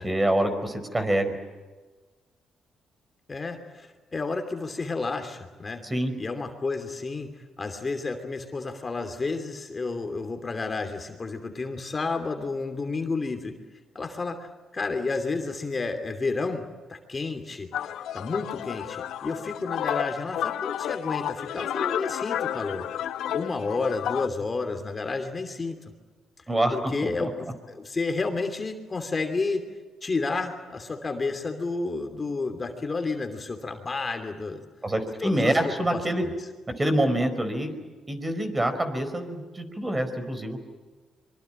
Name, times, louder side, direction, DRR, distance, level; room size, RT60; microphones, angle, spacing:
voice 1, 0.0-1.4 5.8-6.1 26.5-27.3 34.8-36.2 36.8-37.7 38.1-40.6, right 1 dB, 20° right, 8 dB, 4.7 m, -26 dB
voice 2, 3.3-5.8 6.2-7.3 7.6-13.5 13.9-16.6 16.9-17.7 18.1-22.8 23.3-25.8 26.7-29.6 30.0-34.6 35.2-36.3, left 3 dB, 30° left, 6 dB, 2.9 m, -31 dB
sound 1, 17.7-24.3, left 10 dB, 75° left, 0.9 m, -31 dB
25.0 x 24.0 x 9.0 m, 1.3 s
cardioid pair, 90°, 0 cm